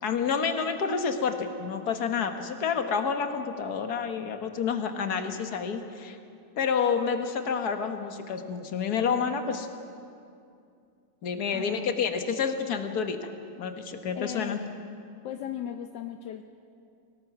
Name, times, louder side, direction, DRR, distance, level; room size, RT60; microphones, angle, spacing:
voice 1, 0.0-6.2 6.6-9.7 11.2-13.3 13.6-14.6, left 6 dB, 60° left, 6 dB, 1.8 m, -29 dB
voice 2, 11.5-11.9 14.1-14.6 15.2-16.4, left 10 dB, 80° left, 6 dB, 1.4 m, -37 dB
25.0 x 18.0 x 6.0 m, 2.5 s
omnidirectional pair, 1.9 m